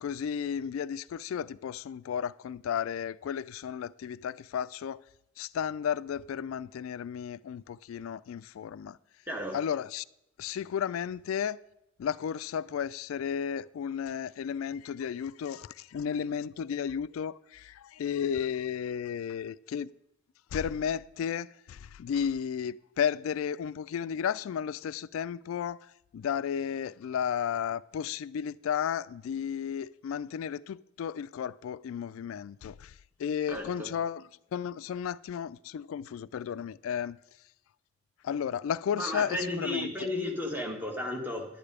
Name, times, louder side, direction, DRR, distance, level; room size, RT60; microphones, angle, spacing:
voice 1, 0.0-5.0 5.4-9.0 9.5-10.0 10.4-11.6 12.0-19.9 20.5-37.2 38.2-40.1, left 8 dB, 80° left, 0.3 m, -33 dB
voice 2, 33.5-33.9 39.0-41.5, left 1 dB, 10° right, 1.7 m, -33 dB
11.0 x 8.8 x 4.9 m
head